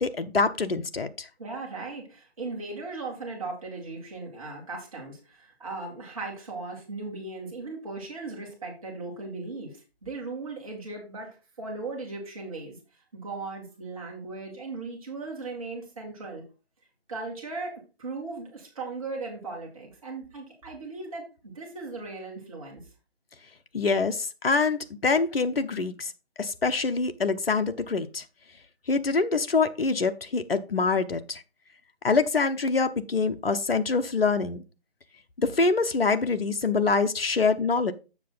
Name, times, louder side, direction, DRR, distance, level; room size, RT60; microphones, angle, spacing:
voice 1, 0.0-1.3 23.7-26.1 26.4-28.2 28.9-31.4 32.0-34.6 35.4-37.9, left 4 dB, 60° left, 0.8 m, -25 dB
voice 2, 1.4-12.8 13.1-16.4 17.1-22.8, right 3 dB, 30° right, 2.5 m, -37 dB
7.4 x 6.4 x 4.0 m
figure-of-eight pair, 160°, 32 cm